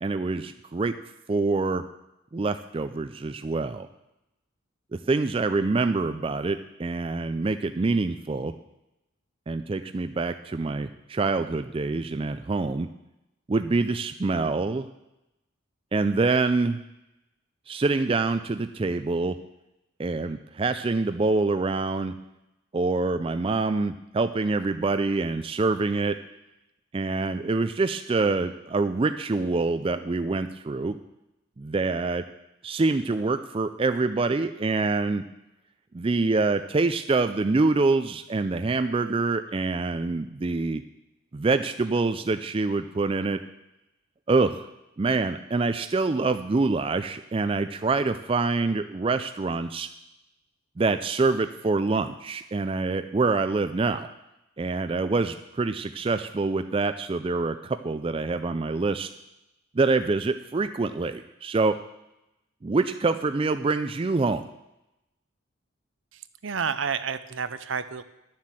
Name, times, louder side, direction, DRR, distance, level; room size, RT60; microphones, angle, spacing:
voice 1, 0.0-0.9 1.3-1.8 2.3-3.9 5.1-8.5 9.5-12.9 13.5-14.9 15.9-16.8 17.7-19.4 20.0-22.1 22.7-26.1 26.9-30.9 31.6-32.2 32.6-35.2 35.9-40.8 41.3-43.4 44.3-44.7 45.0-49.9 50.8-54.1 54.6-59.1 59.8-61.7 62.6-64.4, right 3 dB, 25° right, 9 dB, 0.3 m, -25 dB
voice 2, 66.1-68.0, right 6 dB, 65° right, 13 dB, 0.6 m, -30 dB
11.0 x 7.4 x 7.5 m, 0.91 s
head